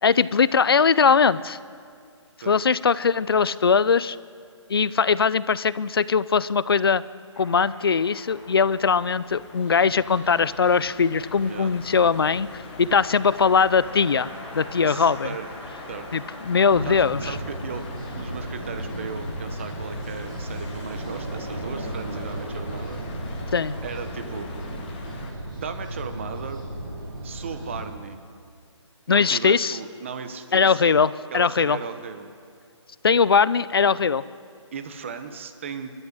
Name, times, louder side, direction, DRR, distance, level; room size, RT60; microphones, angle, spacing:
voice 1, 0.0-1.6 2.5-4.2 4.7-7.0 7.4-14.3 14.5-15.3 16.1-17.4 23.5-23.7 29.1-29.8 30.5-31.8 33.0-34.2, left 5 dB, 50° left, 18 dB, 0.6 m, -20 dB
sound 1, 7.3-26.0, equal, 10° right, 3.1 m, -47 dB
sound 2, 7.4-25.3, left 3 dB, 20° left, 2.1 m, -43 dB
voice 2, 11.4-11.7 14.8-15.5 15.9-16.1 16.8-17.8 18.1-23.0 23.8-24.5 25.5-26.6 27.2-28.2 29.1-30.9 31.3-32.3 34.7-35.9, right 6 dB, 25° right, 8 dB, 1.1 m, -36 dB
sound 3, 16.7-27.8, right 1 dB, 45° right, 6.4 m, -34 dB
27.0 x 12.5 x 9.9 m, 2.3 s
hypercardioid pair, 175°, 16 cm